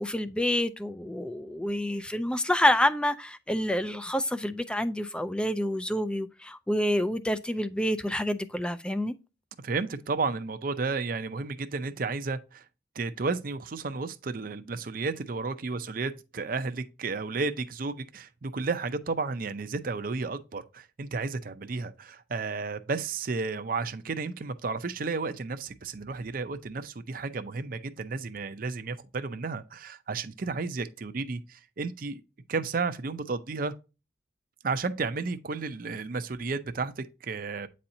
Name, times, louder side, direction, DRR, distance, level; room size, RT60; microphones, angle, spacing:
voice 1, 0.0-9.1, left 1 dB, 5° left, 0.3 m, -28 dB
voice 2, 9.6-12.6 13.0-32.2 32.5-33.7 34.6-37.7, right 4 dB, 50° right, 0.5 m, -32 dB
8.6 x 4.2 x 2.6 m
head